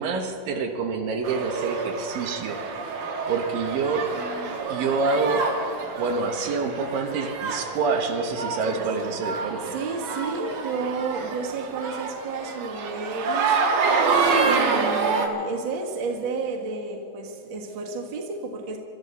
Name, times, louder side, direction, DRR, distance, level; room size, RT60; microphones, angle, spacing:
voice 1, 0.0-2.9 3.3-4.1 4.7-5.5 6.0-9.7, right 4 dB, 80° right, 3 dB, 2.9 m, -27 dB
sound 1, 1.2-15.3, right 4 dB, 60° right, 2.2 m, -27 dB
voice 2, 4.1-4.7 5.8-6.0 8.7-9.2 9.6-13.9 14.4-18.8, right 4 dB, 45° right, 0 dB, 1.9 m, -32 dB
25.5 x 13.0 x 4.1 m, 2.5 s
omnidirectional pair, 4.0 m